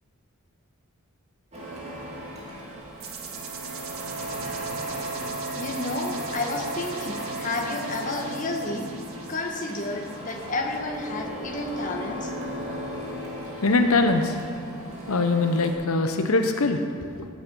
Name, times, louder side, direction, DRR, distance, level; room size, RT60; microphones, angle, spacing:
Printer, 1.5-15.7, right 1 dB, 30° right, 2.4 m, -36 dB
sound 1, 3.0-10.8, right 7 dB, 80° right, 1.5 m, -42 dB
voice 1, 5.6-8.9 9.3-12.3, left 2 dB, 35° left, 2 dB, 1.3 m, -31 dB
voice 2, 13.4-14.6 15.1-17.3, left 3 dB, 85° left, 6 dB, 0.8 m, -23 dB
16.0 x 8.6 x 5.4 m, 2.5 s
head